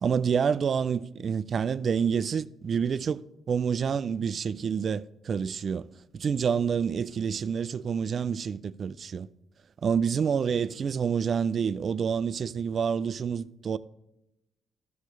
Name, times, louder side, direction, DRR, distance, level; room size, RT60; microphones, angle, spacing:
voice 1, 0.0-3.2 3.5-9.3 9.8-13.8, right 7 dB, 50° right, 0.3 m, -28 dB
13.0 x 6.6 x 3.1 m
cardioid pair, 90°, 0 cm